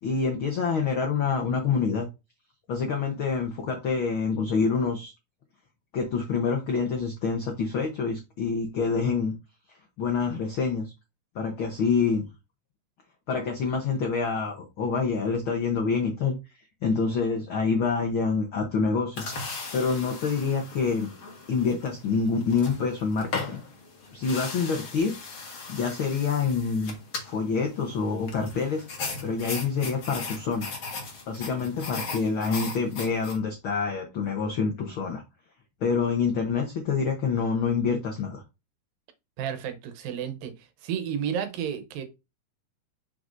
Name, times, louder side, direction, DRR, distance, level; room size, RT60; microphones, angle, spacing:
voice 1, 0.0-2.0 2.7-5.1 5.9-9.3 10.0-10.9 11.3-12.2 13.3-16.3 16.8-19.2 19.7-21.1 21.5-23.6 24.1-25.1 25.7-26.9 27.2-28.8 29.2-30.7 31.3-35.2 35.8-38.4, left 5 dB, 80° left, 1.1 m, -26 dB
sound 1, 19.2-33.4, left 4 dB, 45° left, 2.1 m, -38 dB
voice 2, 39.4-42.0, right 8 dB, 90° right, 2.7 m, -32 dB
6.1 x 6.0 x 2.6 m
omnidirectional pair, 3.9 m